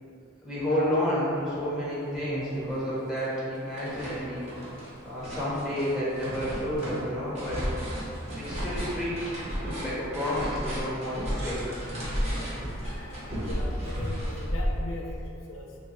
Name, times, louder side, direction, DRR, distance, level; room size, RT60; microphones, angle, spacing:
voice 1, 0.4-4.5 5.0-7.6 8.3-9.1 9.6-11.6, equal, ahead, -8 dB, 0.9 m, -30 dB
sound 1, 2.1-2.2 2.5-3.3 3.5-15.2, equal, 35° right, 0.8 m, -33 dB
voice 2, 12.2-15.8, left 2 dB, 75° left, -1 dB, 0.4 m, -41 dB
2.9 x 2.2 x 4.1 m, 2.6 s
head